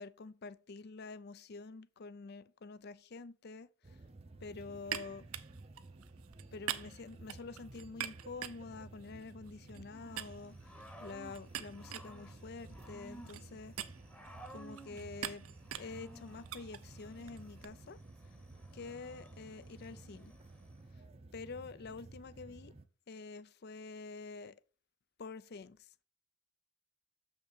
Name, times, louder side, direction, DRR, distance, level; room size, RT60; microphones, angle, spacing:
voice 1, 0.0-4.0 4.4-5.3 6.5-10.7 11.0-13.8 14.5-15.5 15.8-18.0 18.7-20.4 21.3-22.7 23.1-24.6 25.2-25.9, left 4 dB, 50° left, 0.5 m, -47 dB
sound 1, 3.8-22.8, right 2 dB, 30° right, 0.6 m, -54 dB
sound 2, 4.9-9.9 10.2-17.7, right 10 dB, 75° right, 0.6 m, -45 dB
Growling / Cricket, 9.9-20.8, equal, 5° left, 1.0 m, -56 dB
6.9 x 5.8 x 4.3 m
head